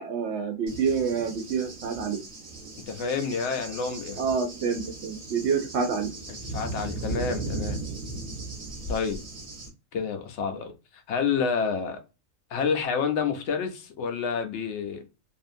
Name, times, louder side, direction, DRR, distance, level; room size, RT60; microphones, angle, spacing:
voice 1, 0.0-2.2 4.2-6.1, right 6 dB, 65° right, 0.8 m, -27 dB
Cricket / Thunder, 0.7-9.7, right 2 dB, 30° right, 0.8 m, -37 dB
voice 2, 2.9-4.2 6.3-7.8 8.9-9.2 9.9-10.7 11.1-12.0 12.5-15.0, left 6 dB, 65° left, 0.9 m, -29 dB
2.7 x 2.4 x 2.5 m
omnidirectional pair, 1.4 m